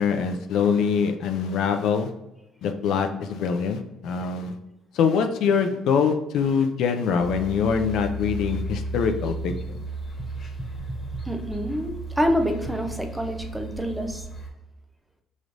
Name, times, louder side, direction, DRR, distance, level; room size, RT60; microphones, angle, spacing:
voice 1, 0.0-2.1 2.6-4.6 4.9-9.8, left 6 dB, 70° left, 6 dB, 0.4 m, -24 dB
sound 1, 7.2-14.5, right 2 dB, 30° left, 1.3 m, -34 dB
voice 2, 11.2-14.2, equal, 5° right, 4 dB, 0.5 m, -27 dB
4.9 x 3.1 x 2.6 m, 0.96 s
cardioid pair, 115°, 0 cm